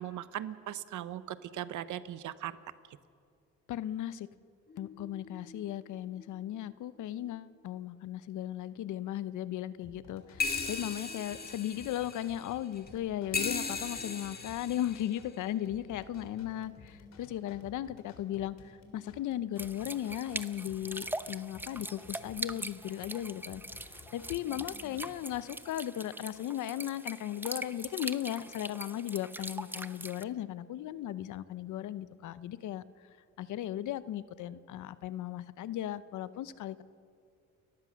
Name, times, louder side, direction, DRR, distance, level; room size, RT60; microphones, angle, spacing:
voice 1, 0.0-2.5, right 12 dB, 75° right, 14 dB, 1.0 m, -39 dB
voice 2, 3.7-4.3 4.8-23.6 24.1-32.8 33.4-36.8, left 12 dB, 75° left, 15 dB, 0.8 m, -37 dB
sound 1, 4.7-5.7 6.2-6.3 6.5-6.6 10.4-12.9 13.3-15.3 16.2-16.3, left 4 dB, 30° left, 2.1 m, -37 dB
sound 2, 9.8-25.4, left 4 dB, 60° left, 3.5 m, -55 dB
sound 3, 19.6-30.2, right 1 dB, 5° right, 0.8 m, -42 dB
30.0 x 15.0 x 6.4 m, 2.3 s
cardioid pair, 90°, 30 cm